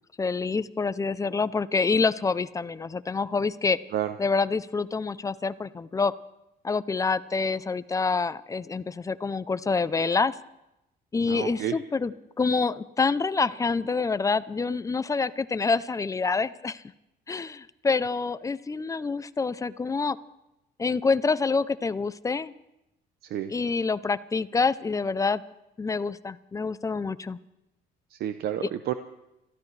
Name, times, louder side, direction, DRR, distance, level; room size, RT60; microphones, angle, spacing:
voice 1, 0.2-3.8 4.2-6.1 6.6-10.3 11.1-16.8 17.3-20.2 20.8-22.5 23.5-25.4 25.8-27.4, left 4 dB, 20° left, 15 dB, 0.6 m, -27 dB
voice 2, 11.2-11.8 23.2-23.5 28.1-28.9, right 11 dB, 70° right, 9 dB, 0.8 m, -30 dB
28.0 x 15.0 x 3.3 m, 0.90 s
cardioid pair, 110°, 17 cm